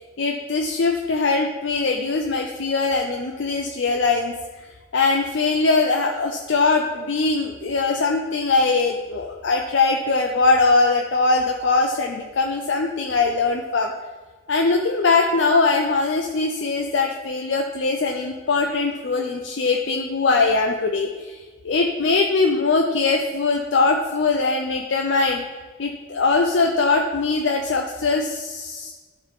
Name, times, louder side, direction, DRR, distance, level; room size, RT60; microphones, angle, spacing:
voice 1, 0.2-4.3 4.9-13.9 14.5-21.4 21.6-25.4 25.8-28.9, left 3 dB, 75° left, 1 dB, 0.6 m, -21 dB
12.0 x 4.3 x 3.6 m, 1.3 s
head